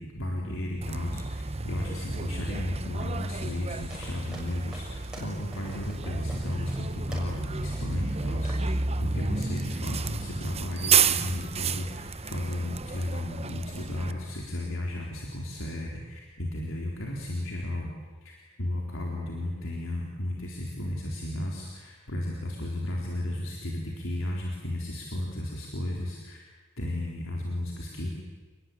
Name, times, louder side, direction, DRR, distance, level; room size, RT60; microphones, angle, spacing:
voice 1, 0.0-8.7 9.0-17.9 18.2-26.4 26.8-28.1, left 1 dB, 75° left, -1 dB, 4.0 m, -34 dB
Bus, 0.8-14.1, right 5 dB, 30° right, 0.9 m, -31 dB
sound 1, 3.9-7.4 7.7-8.2 8.4-8.7, equal, 5° right, 6.7 m, -45 dB
29.0 x 21.0 x 9.4 m, 1.4 s
head